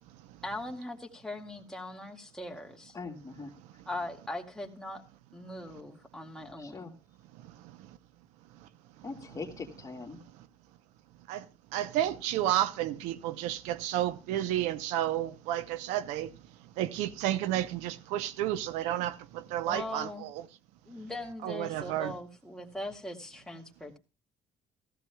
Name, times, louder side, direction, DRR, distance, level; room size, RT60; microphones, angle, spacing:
voice 1, 0.4-2.9 3.9-5.0 5.3-6.9 19.7-20.2 20.9-24.0, left 1 dB, 5° left, 2.1 m, -40 dB
voice 2, 2.9-3.5 6.6-6.9 9.0-10.2, left 4 dB, 30° left, 2.1 m, -41 dB
voice 3, 11.7-16.3 16.8-20.4 21.4-22.2, right 12 dB, 90° right, 0.7 m, -31 dB
15.5 x 14.5 x 2.3 m
supercardioid pair, 80°, 12 cm